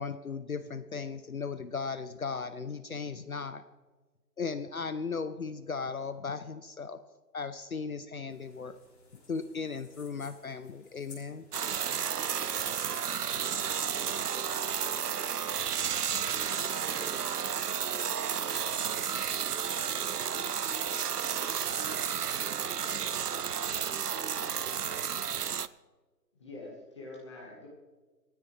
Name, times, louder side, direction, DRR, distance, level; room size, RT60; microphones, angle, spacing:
voice 1, 0.0-3.6 4.4-7.0 7.3-8.8 9.3-11.4, left 5 dB, 55° left, 12 dB, 0.7 m, -36 dB
Handing a plastic bottle, 8.3-21.8, left 3 dB, 40° left, 5.5 m, -58 dB
sound 1, 11.5-25.7, right 8 dB, 65° right, 0.6 m, -32 dB
voice 2, 16.0-24.6, right 2 dB, 30° right, -2 dB, 3.7 m, -52 dB
voice 3, 26.4-27.7, left 2 dB, 15° left, -4 dB, 1.6 m, -45 dB
27.0 x 9.5 x 3.2 m, 1.3 s
figure-of-eight pair, 155°, 50 cm